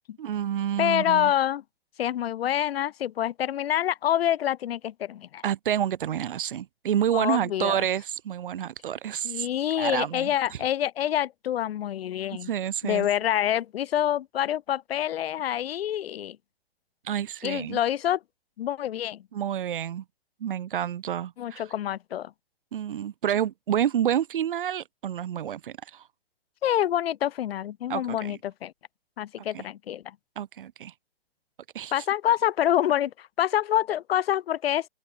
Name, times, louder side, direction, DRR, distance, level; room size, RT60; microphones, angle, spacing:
voice 1, 0.2-1.3 5.4-10.6 12.3-13.1 17.0-17.8 19.3-20.0 20.4-21.6 22.7-26.0 27.9-28.4 29.5-29.6 30.3-30.9 31.7-32.0, right 10 dB, 60° right, 1.6 m, -29 dB
voice 2, 0.8-1.6 2.0-5.4 7.1-7.8 9.2-12.5 12.8-16.4 17.4-18.2 18.6-19.2 21.4-22.3 26.6-28.7 29.2-30.2 31.9-34.9, left 11 dB, 80° left, 0.5 m, -26 dB
hypercardioid pair, 155°, 30 cm